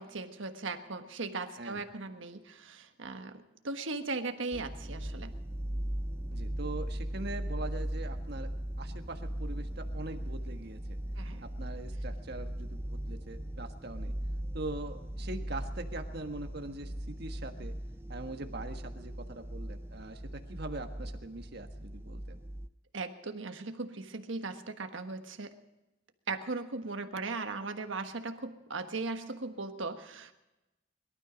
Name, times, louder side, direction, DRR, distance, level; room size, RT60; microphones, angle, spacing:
voice 1, 0.0-5.3 11.2-11.5 22.9-25.5 26.3-30.3, right 3 dB, 75° right, 7 dB, 1.4 m, -38 dB
sound 1, 4.5-22.7, right 1 dB, 10° right, 0.5 m, -38 dB
voice 2, 6.3-8.5 8.8-11.0 11.6-14.1 14.5-16.9 17.2-17.7 18.1-22.4, right 2 dB, 55° right, 6 dB, 1.5 m, -42 dB
22.0 x 12.5 x 5.2 m, 0.98 s
head